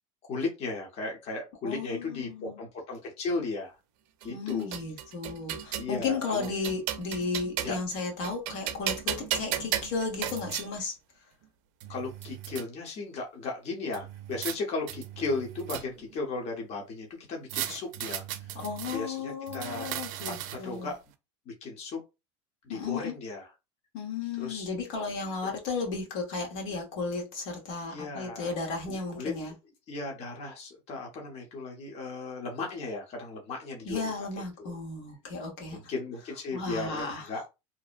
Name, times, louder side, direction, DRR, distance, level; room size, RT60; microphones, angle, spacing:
voice 1, 0.2-3.8 4.2-4.8 5.8-6.5 7.6-7.8 11.9-18.6 18.9-19.9 20.2-21.0 21.5-22.0 22.6-23.5 24.4-24.7 25.4-25.5 27.7-28.5 28.9-29.3 29.9-34.0 34.6-34.7 35.7-37.4, left 3 dB, 45° left, 0.9 m, -36 dB
voice 2, 1.6-2.6 4.3-10.9 18.5-20.9 22.7-23.1 23.9-29.5 33.8-35.8 36.5-37.4, left 4 dB, 75° left, 1.0 m, -34 dB
sound 1, 4.2-5.9 6.4-7.9 8.2-10.7 11.4-11.5 11.8-12.6 13.9-14.6 14.9-16.1 17.5-19.0 19.5-20.8, right 11 dB, 60° right, 0.4 m, -35 dB
2.8 x 2.0 x 2.5 m
supercardioid pair, 120°, 15 cm